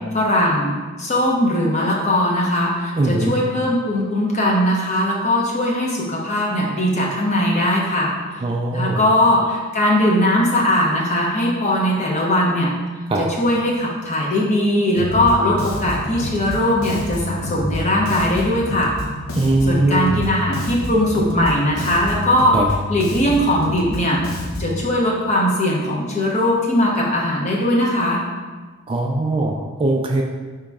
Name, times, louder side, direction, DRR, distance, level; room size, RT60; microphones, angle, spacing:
voice 1, 0.1-8.1 8.7-12.7 13.2-18.9 19.7-22.6 22.9-24.2 24.6-28.2, left 1 dB, 35° left, -3 dB, 0.9 m, -19 dB
voice 2, 3.0-3.3 8.4-9.0 13.1-13.2 19.4-20.2 22.5-22.6 28.9-30.2, right 2 dB, 25° right, 1 dB, 0.3 m, -20 dB
Bass guitar, 15.0-24.9, left 1 dB, 80° left, 0.7 m, -28 dB
5.0 x 3.0 x 3.5 m, 1.4 s
head